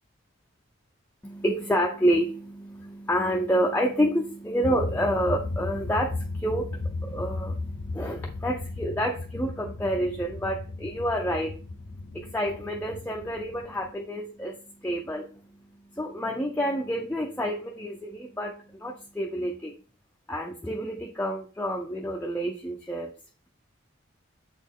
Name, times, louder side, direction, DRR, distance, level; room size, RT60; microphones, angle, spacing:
voice 1, 1.2-19.7 20.3-23.1, equal, 10° left, 0 dB, 0.4 m, -29 dB
sound 1, 4.6-13.9, left 2 dB, 85° left, 0.6 m, -35 dB
7.1 x 4.2 x 3.6 m, 0.39 s
head